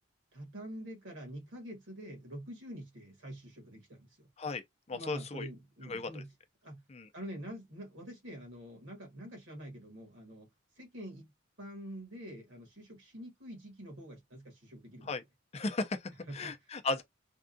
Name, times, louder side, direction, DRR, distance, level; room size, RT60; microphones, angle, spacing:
voice 1, 0.3-4.3 4.9-6.3 6.6-6.8 7.1-10.5 10.8-11.3 11.6-15.1 16.3-16.5, equal, 65° right, 1.6 m, -46 dB
voice 2, 4.9-5.5 5.9-6.2 6.9-7.1 15.0-15.2 15.5-17.0, left 3 dB, 30° left, 0.4 m, -36 dB
3.5 x 2.3 x 2.5 m
head